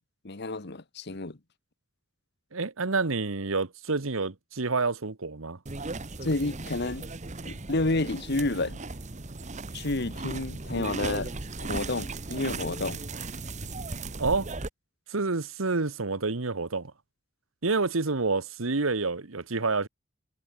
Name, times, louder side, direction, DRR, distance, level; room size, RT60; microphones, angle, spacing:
voice 1, 0.2-1.4 6.2-7.1 7.5-8.8 9.7-11.3 11.6-13.0, left 2 dB, 55° left, 1.5 m, -30 dB
voice 2, 2.5-5.6 14.2-14.5 15.1-16.9 17.6-19.9, right 3 dB, 80° right, 1.3 m, -28 dB
sound 1, 5.7-14.7, right 3 dB, 35° right, 1.3 m, -37 dB
head